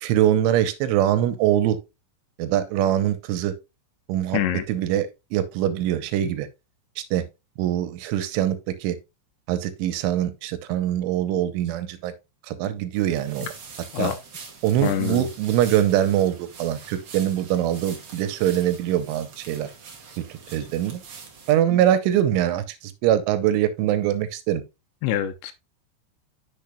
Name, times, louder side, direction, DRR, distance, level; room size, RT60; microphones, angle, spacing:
voice 1, 0.0-1.8 2.4-3.5 4.1-4.4 4.7-6.5 7.0-7.2 7.6-9.0 9.5-12.1 12.5-13.5 14.0-14.1 14.6-19.7 20.2-20.3 20.5-21.0 21.5-24.6, right 11 dB, 90° right, 3.2 m, -23 dB
voice 2, 4.3-4.6 13.4-13.5 13.9-14.2 14.8-15.3 21.7-21.8 25.0-25.5, left 10 dB, 80° left, 3.0 m, -25 dB
sound 1, 12.9-21.5, right 5 dB, 55° right, 1.7 m, -43 dB
8.5 x 6.5 x 2.3 m
omnidirectional pair, 5.5 m